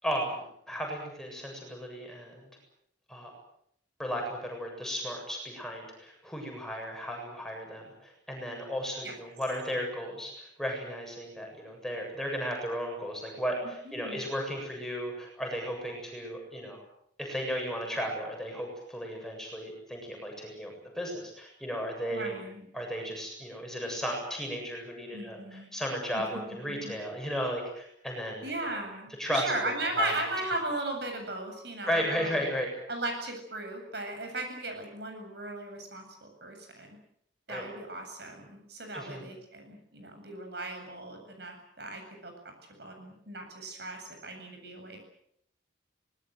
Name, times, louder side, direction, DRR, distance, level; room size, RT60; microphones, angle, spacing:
voice 1, 0.0-2.5 3.1-3.3 4.0-16.8 17.2-22.3 22.7-28.4 29.2-30.1 31.9-32.7 37.5-37.7 38.9-39.2, equal, ahead, 1 dB, 7.7 m, -35 dB
voice 2, 13.8-14.2 22.1-22.7 25.1-25.7 26.1-26.9 28.4-32.4 32.9-37.0 37.5-45.0, right 2 dB, 55° right, 5 dB, 8.0 m, -37 dB
25.5 x 20.5 x 8.0 m, 0.73 s
head